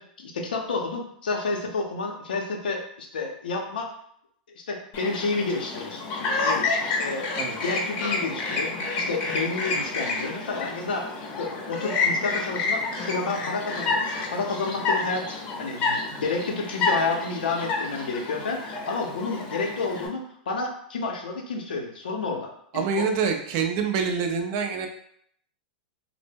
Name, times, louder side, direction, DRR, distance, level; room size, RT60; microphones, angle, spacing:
voice 1, 0.0-3.9 4.6-6.7 7.0-7.3 7.6-11.1 11.4-23.1, left 3 dB, 80° left, 2 dB, 0.6 m, -30 dB
Chirp tweet, 4.9-20.1, left 3 dB, 40° left, 0.7 m, -29 dB
voice 2, 22.7-24.9, right 5 dB, 50° right, 5 dB, 0.4 m, -26 dB
2.1 x 2.0 x 3.3 m, 0.67 s
hypercardioid pair, 115°, 5 cm